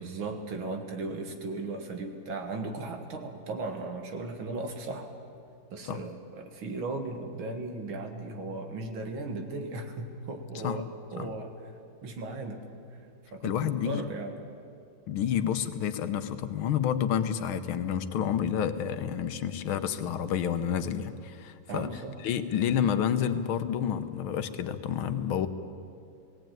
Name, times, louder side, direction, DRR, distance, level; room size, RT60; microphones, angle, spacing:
voice 1, 0.0-5.1 5.7-11.5 12.0-12.6 13.3-14.4 21.7-22.2, right 3 dB, 80° right, 5 dB, 2.5 m, -36 dB
voice 2, 13.4-14.0 15.1-21.9 22.2-25.5, left 9 dB, 90° left, 10 dB, 1.8 m, -29 dB
18.5 x 17.5 x 9.1 m, 2.5 s
omnidirectional pair, 2.2 m